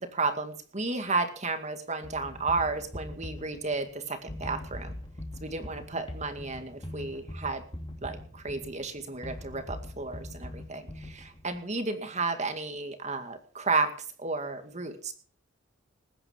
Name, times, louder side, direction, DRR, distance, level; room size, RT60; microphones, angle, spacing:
voice 1, 0.1-4.9 5.4-7.6 8.0-13.9 14.2-15.1, right 3 dB, 35° right, 8 dB, 2.1 m, -32 dB
sound 1, 2.0-11.6, left 1 dB, 25° left, 2.9 m, -42 dB
20.0 x 10.0 x 5.4 m, 0.42 s
head